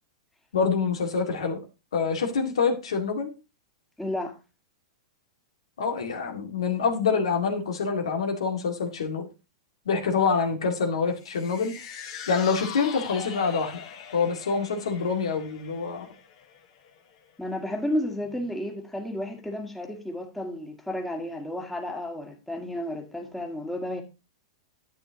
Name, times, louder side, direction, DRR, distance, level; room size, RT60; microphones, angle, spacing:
voice 1, 0.5-1.6 1.9-3.3 5.8-9.3 9.9-11.8 12.3-13.8 14.1-16.1, left 5 dB, 75° left, 2.1 m, -26 dB
voice 2, 4.0-4.4 17.4-24.0, left 1 dB, 5° left, 1.8 m, -32 dB
sound 1, 11.2-17.6 18.0-18.1, left 7 dB, 55° left, 2.7 m, -42 dB
10.5 x 8.9 x 2.9 m
hypercardioid pair, 105°, 3 cm